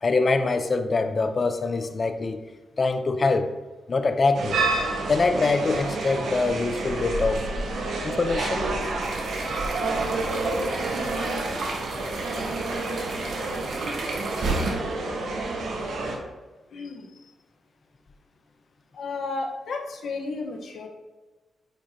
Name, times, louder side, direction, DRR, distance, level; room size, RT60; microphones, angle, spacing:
voice 1, 0.0-2.4 2.8-3.5 3.9-4.6 5.1-7.5 8.0-8.7, left 3 dB, 35° left, 9 dB, 0.5 m, -24 dB
sound 1, 4.3-16.2, right 3 dB, 85° right, 1.2 m, -29 dB
sound 2, 9.0-14.7, right 3 dB, 65° right, 1.3 m, -34 dB
voice 2, 16.7-17.1 18.9-20.9, left 3 dB, 65° left, 2 dB, 1.0 m, -33 dB
9.0 x 4.9 x 2.7 m, 1.2 s
cardioid pair, 110°, 0 cm